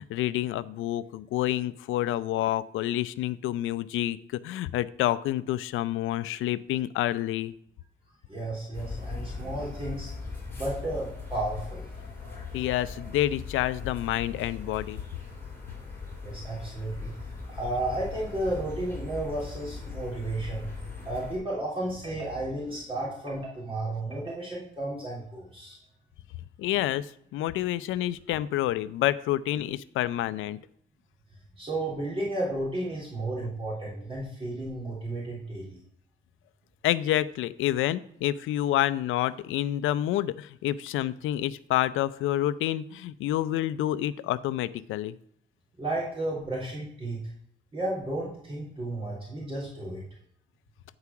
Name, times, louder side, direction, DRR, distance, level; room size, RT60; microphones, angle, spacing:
voice 1, 0.0-7.5 12.5-15.0 26.6-30.6 36.8-45.1, left 13 dB, 85° left, 16 dB, 0.5 m, -28 dB
voice 2, 8.3-10.1 10.5-11.9 16.2-17.1 17.5-25.8 31.6-35.8 45.8-47.2 47.7-50.0, right 2 dB, 25° right, -5 dB, 3.3 m, -33 dB
sound 1, 8.7-21.4, left 4 dB, 10° left, 3.9 m, -39 dB
9.7 x 4.8 x 5.8 m, 0.69 s
cardioid pair, 90°, 20 cm